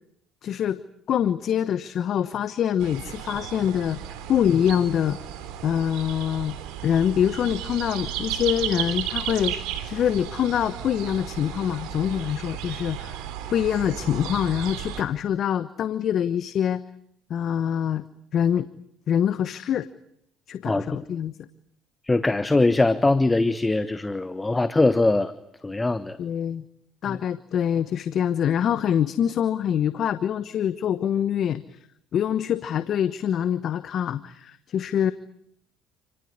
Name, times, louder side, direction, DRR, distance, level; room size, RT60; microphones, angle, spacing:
voice 1, 0.4-0.8 1.1-4.0 4.3-5.2 5.6-6.6 6.8-9.6 9.9-13.2 13.5-16.8 17.3-18.0 18.3-18.7 19.1-19.9 20.5-21.3 26.2-26.6 27.0-31.8 32.1-35.1, left 9 dB, 55° left, 13 dB, 1.1 m, -25 dB
sound 1, 2.8-15.0, right 10 dB, 75° right, 3.5 m, -34 dB
voice 2, 22.1-25.3 25.6-26.2 27.1-27.2, left 2 dB, 15° left, 12 dB, 1.3 m, -21 dB
29.0 x 18.5 x 9.7 m, 0.74 s
hypercardioid pair, 70°, 0 cm